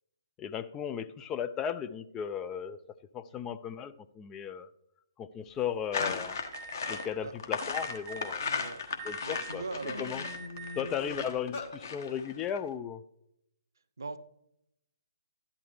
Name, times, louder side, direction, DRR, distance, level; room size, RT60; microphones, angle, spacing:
voice 1, 0.4-2.8 3.1-4.7 5.2-6.4 6.9-8.5 9.0-9.6 10.0-10.2 10.8-13.0, left 8 dB, 15° left, 12 dB, 0.3 m, -36 dB
sound 1, 5.6-5.7 6.0-6.4 6.9-8.4 9.0-9.2 9.5-11.7, left 3 dB, 35° left, 1.1 m, -44 dB
sound 2, 5.9-12.6, left 5 dB, 50° left, 1.3 m, -36 dB
Alarm, 6.5-7.0 7.7-8.3 9.0-9.6 10.2-10.8, right 5 dB, 30° right, 0.7 m, -44 dB
voice 2, 8.4-8.8 9.2-10.2 11.1-11.2 14.0-14.2, right 3 dB, 65° right, 13 dB, 0.7 m, -41 dB
12.5 x 10.5 x 3.2 m, 0.79 s
figure-of-eight pair, 135°, 2 cm